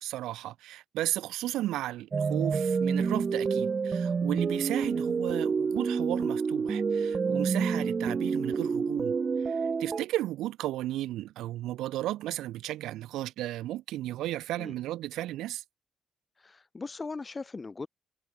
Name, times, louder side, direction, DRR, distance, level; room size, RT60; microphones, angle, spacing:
voice 1, 0.0-9.1 9.4-15.6, right 15 dB, 90° right, 0.9 m, -34 dB
sound 1, 2.1-10.0, right 5 dB, 40° right, 0.5 m, -28 dB
voice 2, 16.4-17.9, left 4 dB, 25° left, 2.7 m, -39 dB
cardioid pair, 90°, 0 cm